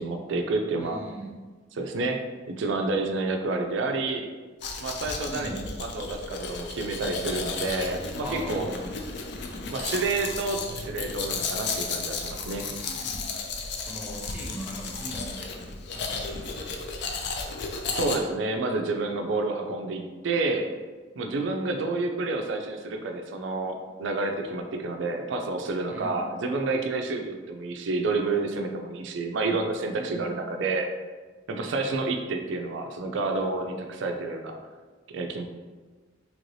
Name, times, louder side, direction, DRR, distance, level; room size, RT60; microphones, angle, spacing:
voice 1, 0.0-1.0 1.7-4.3 4.8-8.8 9.7-12.7 17.9-20.7 21.2-30.9 31.5-34.6 35.1-35.4, right 3 dB, 65° right, 4 dB, 0.4 m, -29 dB
voice 2, 0.8-1.3 5.3-5.6 8.2-8.7 12.5-13.2 13.9-15.6 15.9-16.6 25.9-26.2 29.9-30.3, equal, 10° right, -4 dB, 0.5 m, -39 dB
Domestic sounds home sounds, 4.6-18.2, left 4 dB, 60° left, 0.4 m, -34 dB
2.9 x 2.6 x 3.1 m, 1.3 s
head